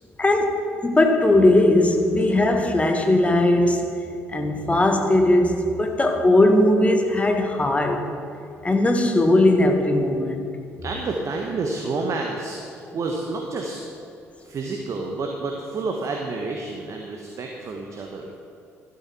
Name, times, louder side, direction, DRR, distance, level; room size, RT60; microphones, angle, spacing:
voice 1, 0.2-3.9 4.3-8.1 8.6-10.5, left 1 dB, 20° left, 4 dB, 1.5 m, -19 dB
voice 2, 10.8-13.8 14.4-18.3, right 3 dB, 45° right, 1 dB, 1.2 m, -29 dB
13.0 x 12.0 x 4.3 m, 2.5 s
figure-of-eight pair, 50°, 7 cm